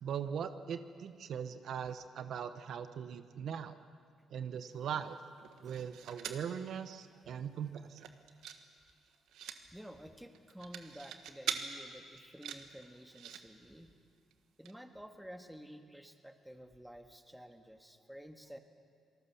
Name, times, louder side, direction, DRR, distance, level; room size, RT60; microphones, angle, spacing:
voice 1, 0.0-3.8 4.3-5.2 5.6-8.0, right 8 dB, 70° right, 10 dB, 1.0 m, -40 dB
sound 1, 5.4-6.5 6.9-7.0 7.3-7.6 7.9-8.6 8.9-9.6 10.3-11.6 12.2-13.4 14.3-14.4 14.7-14.8, right 9 dB, 85° right, 1.4 m, -42 dB
voice 2, 9.6-13.9 14.6-18.6, equal, 5° right, 6 dB, 1.8 m, -52 dB
27.0 x 19.5 x 7.1 m, 2.1 s
cardioid pair, 90°, 0 cm